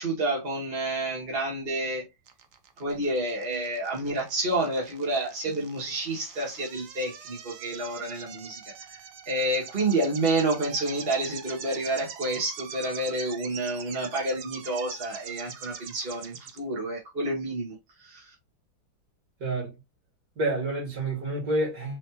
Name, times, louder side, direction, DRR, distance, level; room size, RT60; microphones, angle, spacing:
voice 1, 0.0-2.0 2.8-8.6 8.9-9.0 9.2-18.3, right 2 dB, 30° right, 1.5 m, -29 dB
sound 1, 2.3-16.6, right 7 dB, 75° right, 0.7 m, -44 dB
voice 2, 19.4-19.7 20.4-22.0, right 2 dB, 45° right, 2.7 m, -28 dB
4.7 x 3.1 x 2.9 m
omnidirectional pair, 2.2 m